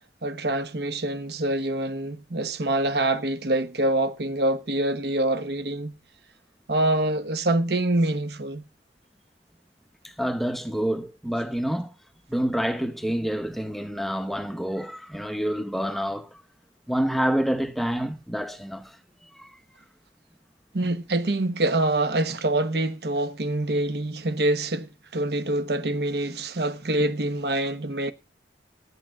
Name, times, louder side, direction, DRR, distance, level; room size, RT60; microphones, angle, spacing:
voice 1, 0.2-5.9 6.7-8.6 20.7-28.1, right 1 dB, 70° right, 1.0 m, -25 dB
voice 2, 10.0-11.9 12.3-16.4 16.9-19.0 19.3-19.5, equal, ahead, 0.8 m, -28 dB
12.0 x 8.8 x 4.6 m
head